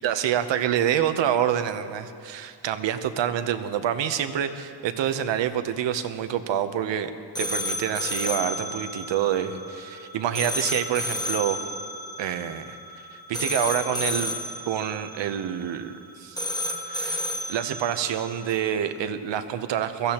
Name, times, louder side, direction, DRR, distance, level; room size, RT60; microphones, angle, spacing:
voice 1, 0.0-7.1 7.4-11.6 12.2-12.8 13.1-14.3 14.6-16.4 16.9-20.1, right 9 dB, 70° right, 9 dB, 0.9 m, -27 dB
sound 1, 7.3-18.7, left 1 dB, 10° left, 1.1 m, -32 dB
22.0 x 15.0 x 2.9 m, 2.4 s
cardioid pair, 150°, 46 cm